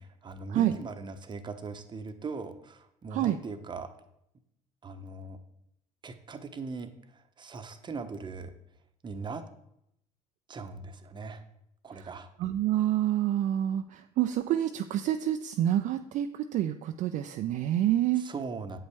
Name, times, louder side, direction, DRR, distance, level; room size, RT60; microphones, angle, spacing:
voice 1, 0.2-3.9 4.8-5.4 6.0-8.5 9.0-9.4 10.5-11.4 11.8-12.3 18.1-18.8, right 4 dB, 25° right, 9 dB, 0.8 m, -39 dB
voice 2, 12.4-18.2, right 12 dB, 50° right, 7 dB, 0.4 m, -27 dB
7.8 x 5.4 x 3.4 m, 0.78 s
hypercardioid pair, 70°, 17 cm